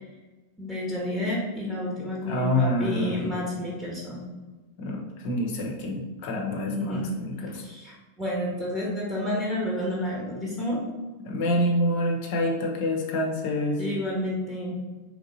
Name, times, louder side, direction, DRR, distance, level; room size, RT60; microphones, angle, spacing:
voice 1, 0.6-4.2 6.7-7.1 7.6-10.8 13.8-14.8, left 1 dB, 10° right, -5 dB, 1.1 m, -30 dB
voice 2, 2.3-3.3 4.8-7.6 11.2-13.8, left 1 dB, 50° left, 0 dB, 0.8 m, -27 dB
3.9 x 3.1 x 3.9 m, 1.2 s
figure-of-eight pair, 90°, 0 cm